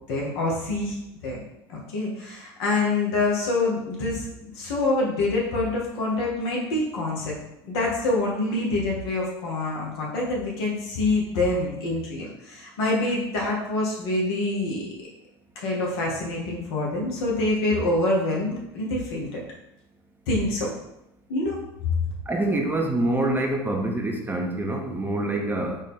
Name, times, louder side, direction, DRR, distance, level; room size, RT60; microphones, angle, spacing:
voice 1, 0.1-1.0 1.2-1.4 1.7-7.4 7.6-14.9 15.5-19.3 20.3-20.7 21.3-21.6, left 2 dB, 70° left, -3 dB, 1.3 m, -26 dB
voice 2, 22.3-25.8, right 2 dB, 15° right, 1 dB, 0.7 m, -26 dB
4.0 x 2.6 x 3.6 m, 0.85 s
hypercardioid pair, 80°, 13 cm